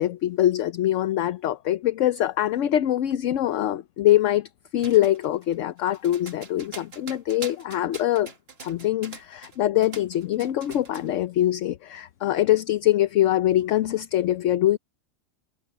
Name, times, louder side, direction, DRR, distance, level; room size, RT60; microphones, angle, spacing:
voice 1, 0.0-8.3 8.6-14.8, left 13 dB, 70° left, 1.0 m, -23 dB
sound 1, 4.8-9.6 9.8-11.1, right 4 dB, 50° right, 1.8 m, -42 dB
omnidirectional pair, 1.4 m